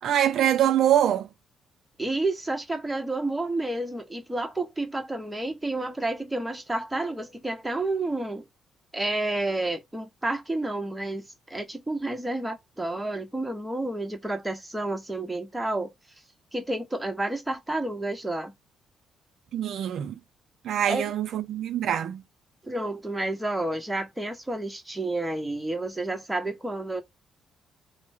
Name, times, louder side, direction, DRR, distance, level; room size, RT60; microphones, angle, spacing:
voice 1, 0.0-1.3 19.5-20.2 20.6-22.2, right 10 dB, 70° right, 0.3 m, -24 dB
voice 2, 2.0-8.4 8.9-15.9 16.5-18.5 20.9-21.1 22.6-27.0, right 2 dB, 10° right, 1.0 m, -30 dB
2.9 x 2.1 x 3.4 m
cardioid pair, 90°, 0 cm